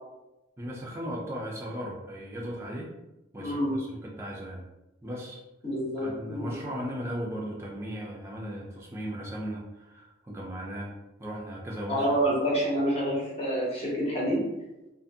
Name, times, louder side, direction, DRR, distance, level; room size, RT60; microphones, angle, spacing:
voice 1, 0.6-2.9 3.3-4.7 5.0-5.4 6.0-10.9 11.2-12.2, equal, 15° right, -3 dB, 0.4 m, -37 dB
voice 2, 3.4-3.8 5.6-6.5 11.9-14.4, equal, 30° left, -5 dB, 0.7 m, -27 dB
2.5 x 2.5 x 2.5 m, 0.99 s
head